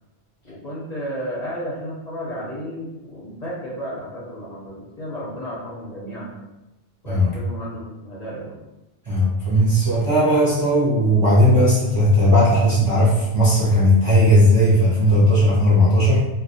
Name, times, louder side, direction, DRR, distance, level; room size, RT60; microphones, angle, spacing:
voice 1, 0.4-6.3 7.0-8.6, equal, 50° left, -7 dB, 0.6 m, -33 dB
voice 2, 9.1-16.3, equal, 40° right, -9 dB, 0.5 m, -16 dB
2.2 x 2.1 x 2.6 m, 0.99 s
omnidirectional pair, 1.2 m